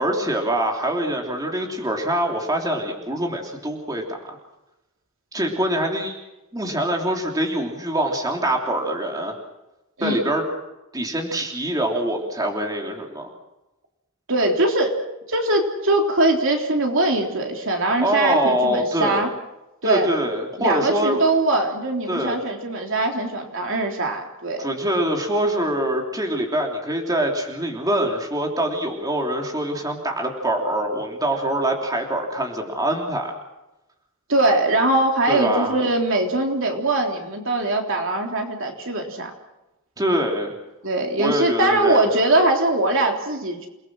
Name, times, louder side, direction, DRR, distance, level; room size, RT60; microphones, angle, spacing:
voice 1, 0.0-4.2 5.3-6.1 6.5-9.4 10.0-10.4 10.9-13.3 18.0-19.3 19.8-21.2 22.1-22.4 24.6-33.3 35.3-35.8 40.0-40.5 41.2-42.1, right 1 dB, 15° right, 1 dB, 3.3 m, -24 dB
voice 2, 14.3-15.0 15.3-19.3 19.8-20.1 20.6-24.7 34.3-39.3 40.8-43.7, right 2 dB, 60° right, 2 dB, 3.5 m, -21 dB
29.5 x 20.5 x 6.3 m, 0.98 s
head